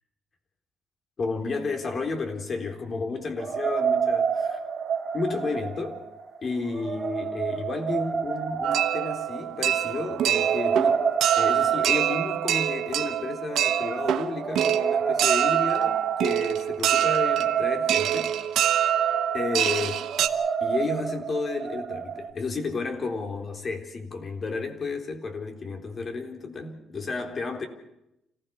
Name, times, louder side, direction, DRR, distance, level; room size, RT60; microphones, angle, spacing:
voice 1, 1.2-4.6 5.1-6.0 6.4-11.1 11.4-18.4 19.3-20.0 20.6-27.7, left 3 dB, 45° left, 3.9 m, -32 dB
sound 1, 3.4-22.3, right 6 dB, 45° right, 2.7 m, -30 dB
sound 2, 8.6-20.3, right 11 dB, 80° right, 1.2 m, -25 dB
27.5 x 16.0 x 7.2 m
cardioid pair, 90°, 0 cm